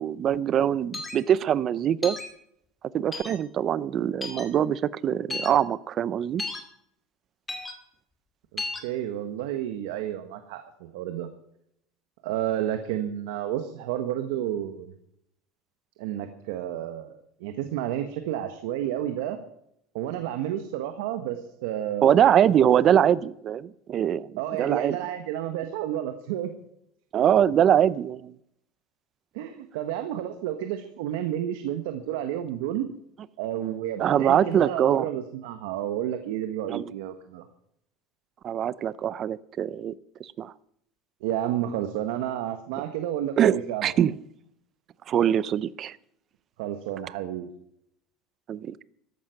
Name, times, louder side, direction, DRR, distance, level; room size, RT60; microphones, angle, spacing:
voice 1, 0.0-2.2 2.9-6.4 22.0-25.0 27.1-28.3 34.0-35.1 36.7-36.8 38.4-39.9 40.2-40.5 43.4-44.1 45.1-46.0 48.5-48.8, right 9 dB, 35° right, 19 dB, 0.6 m, -23 dB
sound 1, 0.9-1.2 2.0-2.3 3.1-3.4 4.2-4.5 5.3-5.5 6.4-6.6 7.5-7.7 8.6-8.8, left 3 dB, 15° left, 2.5 m, -33 dB
voice 2, 8.5-11.3 12.2-14.9 16.0-19.4 19.9-22.1 22.9-23.0 24.4-26.5 29.3-32.9 33.4-37.5 41.2-43.9 46.6-47.5, right 11 dB, 85° right, 8 dB, 1.4 m, -31 dB
14.5 x 11.5 x 5.9 m, 0.74 s
cardioid pair, 155°, 0 cm